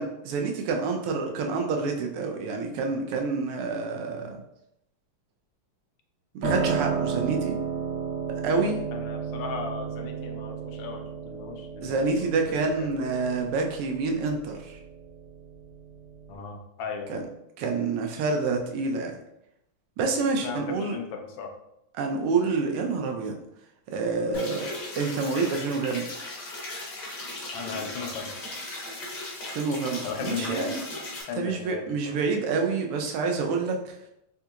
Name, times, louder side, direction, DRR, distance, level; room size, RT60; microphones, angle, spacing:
voice 1, 0.0-4.4 6.3-7.6 8.4-8.8 11.8-14.8 17.1-17.2 17.6-19.2 20.0-21.0 22.0-23.4 23.9-26.1 29.5-30.8 31.4-33.9, right 4 dB, 90° right, 3 dB, 1.6 m, -28 dB
Piano, 6.4-16.4, right 6 dB, 70° right, 1.6 m, -33 dB
voice 2, 8.9-12.9 16.3-17.3 20.4-21.5 27.5-28.3 30.0-30.7 31.3-32.2, left 5 dB, 90° left, 3 dB, 1.6 m, -36 dB
sound 1, 24.3-31.2, left 2 dB, 60° left, 1.3 m, -37 dB
4.4 x 2.8 x 2.3 m, 0.81 s
omnidirectional pair, 2.4 m